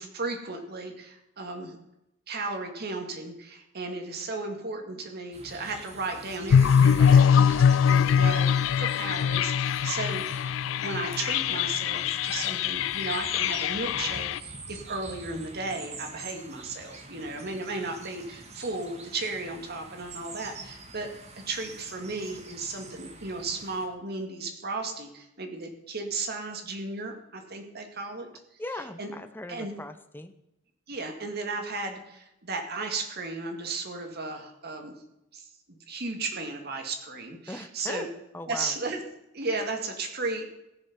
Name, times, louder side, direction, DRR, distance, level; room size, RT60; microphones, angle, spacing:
voice 1, 0.0-1.8 2.3-7.5 7.9-10.3 10.8-28.3 29.0-29.1 29.5-29.7 30.9-35.0 35.3-38.1 38.5-39.0 39.3-40.5, right 3 dB, 55° right, 4 dB, 1.9 m, -35 dB
sound 1, 5.3-23.9, right 3 dB, 35° right, 1.7 m, -46 dB
sound 2, 6.5-14.4, left 7 dB, 75° left, 0.3 m, -23 dB
voice 2, 28.6-30.3 37.5-38.1 38.3-38.7, left 1 dB, 10° left, 9 dB, 0.7 m, -38 dB
16.0 x 6.9 x 5.9 m, 0.85 s
head